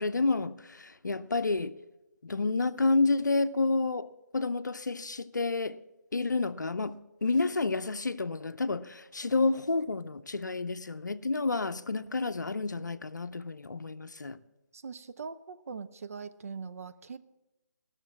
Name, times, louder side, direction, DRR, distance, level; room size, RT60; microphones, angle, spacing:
voice 1, 0.0-1.8 2.2-5.8 6.1-14.4, left 3 dB, 70° left, 0.6 m, -30 dB
voice 2, 14.7-17.2, right 5 dB, 50° right, 0.6 m, -41 dB
15.0 x 6.5 x 7.2 m
figure-of-eight pair, 145°, 10 cm